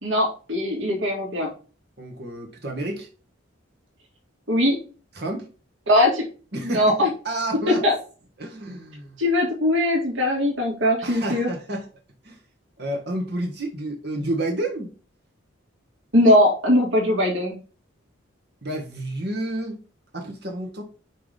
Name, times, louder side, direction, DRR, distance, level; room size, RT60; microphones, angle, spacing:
voice 1, 0.0-1.5 4.5-4.8 5.9-6.2 6.6-7.1 7.7-7.9 9.2-11.5 16.1-17.5, left 1 dB, 75° right, -1 dB, 2.1 m, -20 dB
voice 2, 2.0-3.1 5.1-5.5 6.5-7.0 7.2-7.9 8.4-9.2 11.0-11.8 12.2-12.4 12.8-14.9 18.6-19.8 20.1-20.8, right 1 dB, 50° right, 2 dB, 1.7 m, -30 dB
6.0 x 4.7 x 3.5 m, 0.36 s
head